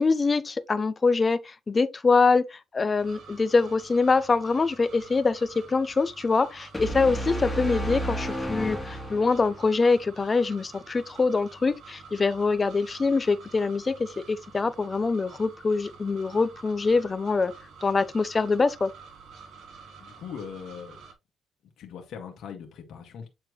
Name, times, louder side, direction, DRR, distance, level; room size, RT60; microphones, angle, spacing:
voice 1, 0.0-17.5 17.8-18.9, left 4 dB, 30° left, 0.7 m, -24 dB
sound 1, 3.0-21.1, right 5 dB, 75° right, 2.9 m, -49 dB
sound 2, 6.7-9.7, equal, 10° left, 2.5 m, -31 dB
voice 2, 19.8-21.0 21.8-23.3, left 7 dB, 75° left, 1.8 m, -41 dB
8.8 x 4.4 x 3.1 m
cardioid pair, 90°, 0 cm